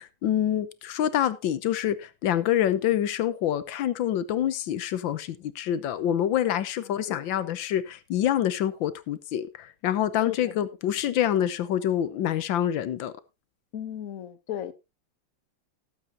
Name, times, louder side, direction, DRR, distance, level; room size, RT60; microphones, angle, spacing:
voice 1, 0.0-13.1, left 11 dB, 85° left, 1.6 m, -26 dB
voice 2, 6.8-7.2 10.2-10.5 13.7-14.7, left 10 dB, 50° left, 1.3 m, -36 dB
18.5 x 8.0 x 2.7 m
omnidirectional pair, 2.1 m